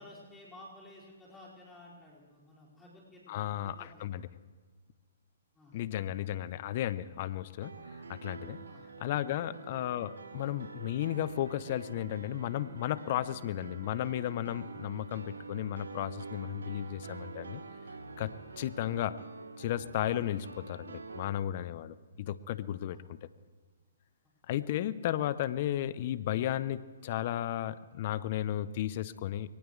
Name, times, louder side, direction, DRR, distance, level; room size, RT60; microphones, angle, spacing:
voice 1, 0.0-4.1 5.5-5.8 8.0-8.1 8.6-8.9 9.6-9.7 22.9-23.0, left 1 dB, 10° left, -7 dB, 5.2 m, -53 dB
voice 2, 3.3-4.3 5.7-7.8 8.1-8.6 9.0-17.6 18.2-19.2 19.6-23.2 24.5-29.5, left 12 dB, 45° left, 16 dB, 0.7 m, -34 dB
Piano, 7.6-21.3, right 4 dB, 80° right, 1.2 m, -46 dB
23.0 x 19.0 x 3.3 m, 1.5 s
hypercardioid pair, 130°, 0 cm